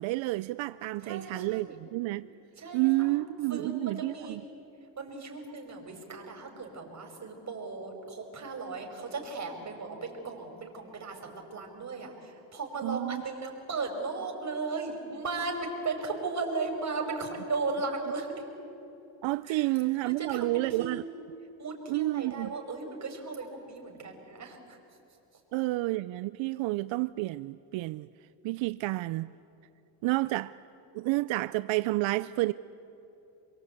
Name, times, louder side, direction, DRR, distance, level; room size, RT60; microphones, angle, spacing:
voice 1, 0.0-2.3 2.7-4.4 12.8-13.2 19.2-21.0 21.9-22.5 25.5-28.1 28.4-29.3 30.0-30.6 30.9-32.5, right 20 dB, 85° right, 0.6 m, -30 dB
voice 2, 1.0-1.8 2.6-2.9 3.5-4.4 5.0-18.4 19.4-19.7 20.0-21.1 21.6-24.8, right 3 dB, 40° right, 5.3 m, -36 dB
27.0 x 23.0 x 8.3 m
cardioid pair, 100°, 45 cm